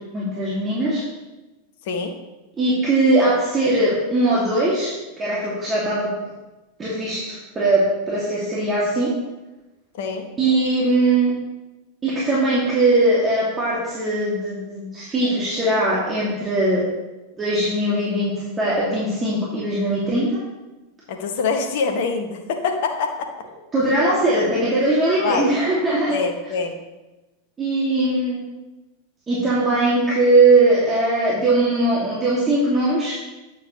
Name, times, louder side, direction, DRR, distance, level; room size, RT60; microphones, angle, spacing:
voice 1, 0.1-1.0 2.6-6.1 6.8-9.1 10.4-11.3 12.0-16.8 17.4-18.3 18.6-20.4 23.7-26.1 27.6-28.4 29.3-33.1, right 2 dB, 20° right, -8 dB, 2.6 m, -20 dB
voice 2, 1.8-2.2 10.0-10.3 21.1-23.5 25.2-25.5 26.1-26.8, left 5 dB, 60° left, 6 dB, 1.1 m, -25 dB
9.3 x 7.4 x 3.3 m, 1.1 s
figure-of-eight pair, 90°, 0 cm